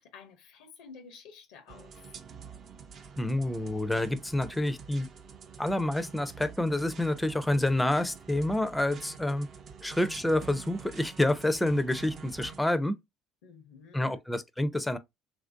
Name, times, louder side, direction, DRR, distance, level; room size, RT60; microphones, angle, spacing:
voice 1, 0.0-1.9 13.4-14.2, left 5 dB, 85° left, 0.6 m, -51 dB
sound 1, 1.7-12.6, right 6 dB, 50° right, 0.5 m, -47 dB
voice 2, 3.2-5.1 5.6-9.5 9.8-13.0 13.9-15.0, left 1 dB, 10° left, 0.4 m, -28 dB
3.0 x 2.5 x 2.5 m
supercardioid pair, 85°, 0 cm